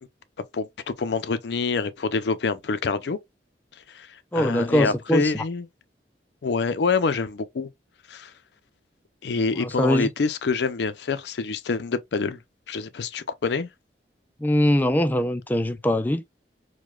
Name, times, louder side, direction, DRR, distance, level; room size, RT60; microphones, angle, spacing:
voice 1, 0.5-3.2 3.9-5.7 6.4-7.7 8.1-8.3 9.2-12.4 12.7-13.7, left 4 dB, 70° left, 0.5 m, -26 dB
voice 2, 4.3-5.4 9.5-10.1 14.4-16.2, left 1 dB, 10° left, 0.3 m, -22 dB
4.8 x 2.2 x 2.3 m
head